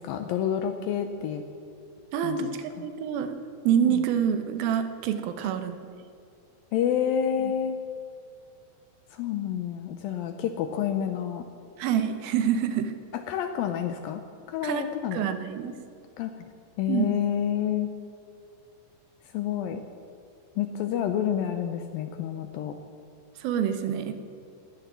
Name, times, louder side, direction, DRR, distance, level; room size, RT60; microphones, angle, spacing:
voice 1, 0.0-1.4 2.2-2.9 3.8-4.0 6.7-7.8 9.1-11.4 13.3-14.2 14.5-15.2 16.2-16.5 16.8-17.9 19.3-19.8 20.6-22.8, left 9 dB, 80° left, 7 dB, 2.1 m, -29 dB
voice 2, 2.1-3.4 3.6-5.8 7.4-7.5 11.8-12.9 14.6-15.7 16.9-17.1 23.4-24.1, right 8 dB, 70° right, 8 dB, 2.5 m, -27 dB
17.5 x 9.9 x 7.5 m, 2.4 s
omnidirectional pair, 4.8 m